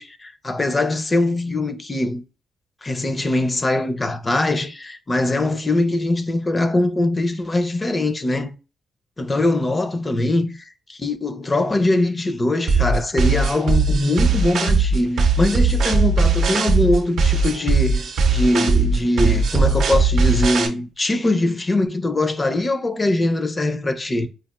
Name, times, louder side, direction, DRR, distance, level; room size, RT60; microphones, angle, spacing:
voice 1, 0.0-2.2 2.8-8.6 9.2-24.3, left 2 dB, 25° left, 0.5 m, -22 dB
sound 1, 12.7-20.7, right 3 dB, 80° right, 0.6 m, -18 dB
4.6 x 2.4 x 2.4 m
cardioid pair, 100°, 0 cm